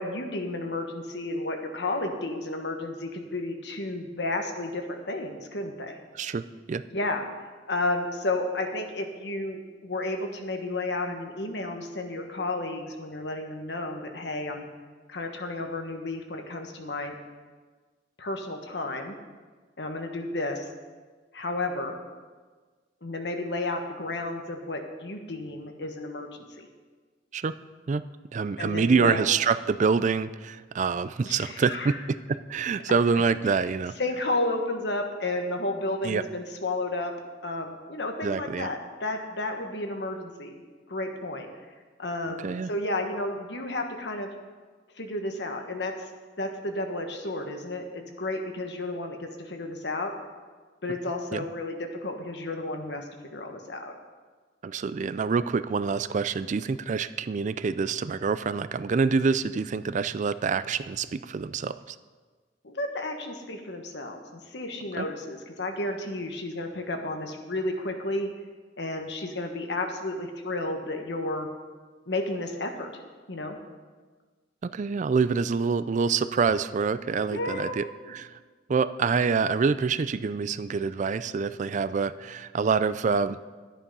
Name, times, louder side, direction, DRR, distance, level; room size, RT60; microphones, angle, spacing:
voice 1, 0.0-6.0 6.9-7.2 7.7-14.6 15.1-17.1 18.2-19.1 19.8-20.6 21.3-22.0 23.0-26.7 28.6-29.2 31.2-32.0 33.1-33.5 34.0-37.1 37.4-40.6 40.9-41.5 42.0-44.3 44.9-45.9 46.4-50.1 50.8-53.9 62.6-68.3 68.8-71.5 72.1-73.0 73.3-73.6 77.3-77.8, left 2 dB, 65° left, 4 dB, 1.4 m, -32 dB
voice 2, 6.1-6.8 27.3-27.5 27.9-28.0 28.3-33.9 36.0-36.2 38.2-38.7 42.4-42.7 51.3-51.4 54.6-62.0 65.0-65.1 74.6-78.4 78.7-83.4, right 5 dB, 45° right, 14 dB, 0.4 m, -26 dB
11.5 x 9.9 x 5.4 m, 1.4 s
head